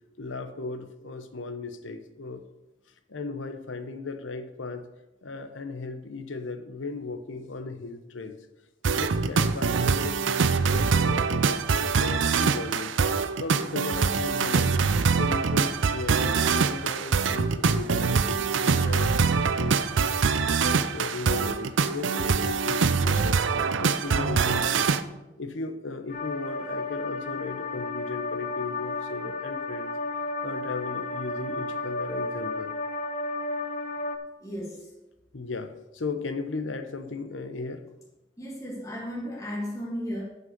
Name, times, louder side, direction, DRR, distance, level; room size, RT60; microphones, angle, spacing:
voice 1, 0.2-2.4 3.1-4.9 5.2-8.4 8.9-12.9 13.4-14.8 15.1-20.2 20.6-23.5 23.8-25.0 25.4-29.9 30.4-32.7 35.3-37.9, left 3 dB, 90° left, 8 dB, 0.9 m, -36 dB
sound 1, 8.8-25.0, right 5 dB, 80° right, 0.5 m, -24 dB
sound 2, 26.1-34.2, left 2 dB, 45° left, 0.9 m, -33 dB
voice 2, 34.4-34.9 38.4-40.2, equal, 20° left, -6 dB, 2.4 m, -34 dB
9.7 x 5.6 x 6.7 m, 0.99 s
head